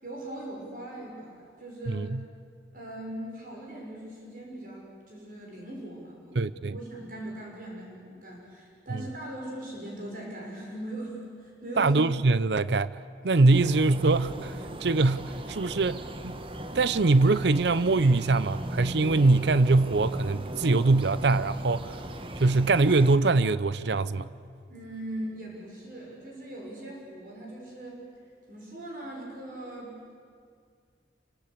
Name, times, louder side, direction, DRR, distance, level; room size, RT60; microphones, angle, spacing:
voice 1, 0.0-2.1 2.7-11.9 24.7-28.0 28.5-30.1, right 1 dB, 50° right, 6.3 m, -40 dB
voice 2, 1.9-2.2 6.3-6.8 8.9-9.0 11.8-12.9 13.2-16.3 16.7-22.0 22.4-24.3, right 3 dB, 75° right, 0.6 m, -23 dB
sound 1, 13.5-23.2, right 1 dB, 30° right, 1.2 m, -39 dB
28.0 x 24.5 x 8.3 m
head